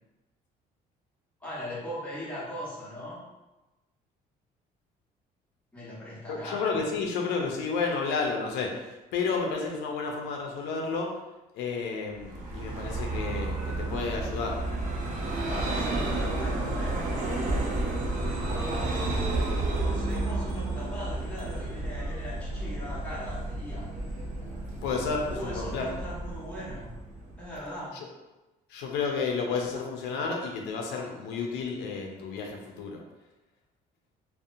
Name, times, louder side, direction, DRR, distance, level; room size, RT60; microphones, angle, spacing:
voice 1, 1.4-3.2 5.7-6.6 15.5-17.1 18.2-18.9 19.7-23.9 25.3-26.9 27.4-28.0, left 1 dB, 5° left, -9 dB, 1.2 m, -39 dB
voice 2, 6.3-11.2 11.5-14.6 24.8-25.9 28.7-33.0, left 4 dB, 90° left, 1 dB, 0.4 m, -31 dB
Vehicle, 12.2-27.6, right 2 dB, 50° right, 0.6 m, -31 dB
2.7 x 2.1 x 2.5 m, 1.1 s
cardioid pair, 110°, 17 cm